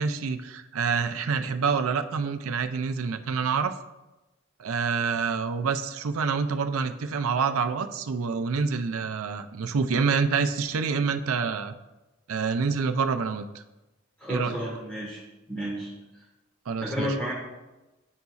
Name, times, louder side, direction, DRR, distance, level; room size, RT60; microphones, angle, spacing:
voice 1, 0.0-3.7 4.6-11.7 12.3-13.6 14.3-14.6 16.7-17.1, right 5 dB, 85° right, 8 dB, 0.5 m, -27 dB
voice 2, 14.2-15.2 15.5-15.9 16.8-17.3, equal, 5° left, -8 dB, 1.4 m, -31 dB
10.5 x 4.0 x 2.4 m, 1.0 s
head